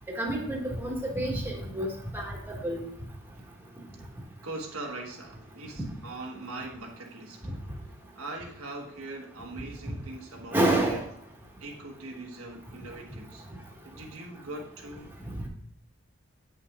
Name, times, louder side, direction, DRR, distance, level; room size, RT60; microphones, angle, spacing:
voice 1, 0.1-2.8 10.5-11.0, right 1 dB, 10° right, -1 dB, 1.5 m, -28 dB
voice 2, 4.4-7.5 8.1-11.0 11.6-13.4 13.8-15.1, right 2 dB, 75° right, 1 dB, 1.4 m, -41 dB
8.4 x 5.9 x 3.6 m, 0.64 s
head